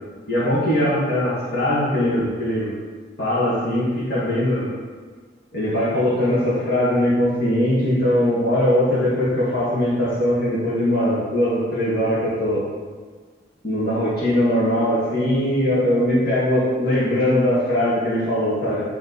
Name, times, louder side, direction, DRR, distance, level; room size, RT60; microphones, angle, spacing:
voice 1, 0.3-2.7 3.2-4.7 5.5-12.6 13.6-18.8, left 1 dB, 55° left, -11 dB, 1.8 m, -20 dB
9.3 x 3.6 x 4.1 m, 1.5 s
head